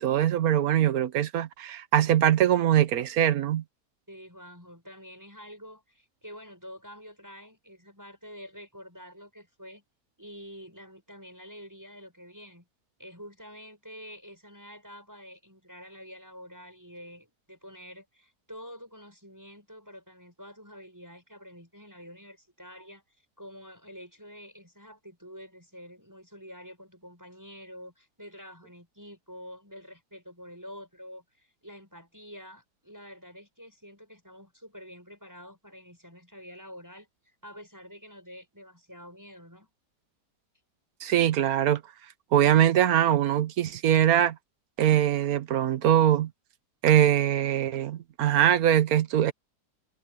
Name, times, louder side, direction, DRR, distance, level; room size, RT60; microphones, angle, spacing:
voice 1, 0.0-3.6 41.0-41.8 42.3-44.4 44.8-46.3 46.8-49.3, right 11 dB, 65° right, 1.3 m, -22 dB
voice 2, 4.1-9.8 10.2-12.7 13.0-39.7, equal, 10° right, 6.4 m, -47 dB
omnidirectional pair, 1.8 m